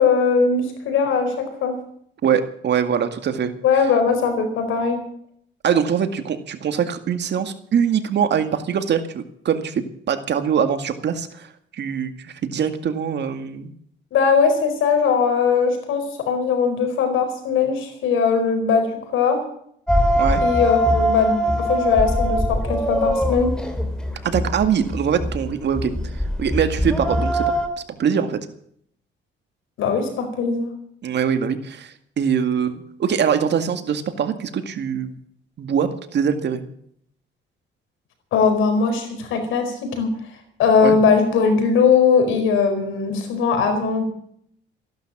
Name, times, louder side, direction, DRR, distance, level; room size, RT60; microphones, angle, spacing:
voice 1, 0.0-1.8 3.6-5.0 14.1-18.9 19.1-19.4 20.4-23.5 29.8-30.7 38.3-40.1 40.6-44.0, left 5 dB, 85° left, 7 dB, 4.6 m, -20 dB
voice 2, 2.2-3.5 5.6-11.5 11.7-13.7 20.2-20.4 24.2-25.9 26.4-27.5 28.0-28.4 31.0-35.2 35.6-36.6 40.8-41.0, right 7 dB, 60° right, 8 dB, 2.0 m, -23 dB
sound 1, 19.9-27.7, equal, 5° left, 3.2 m, -22 dB
15.0 x 11.5 x 7.4 m, 0.66 s
cardioid pair, 90°, 20 cm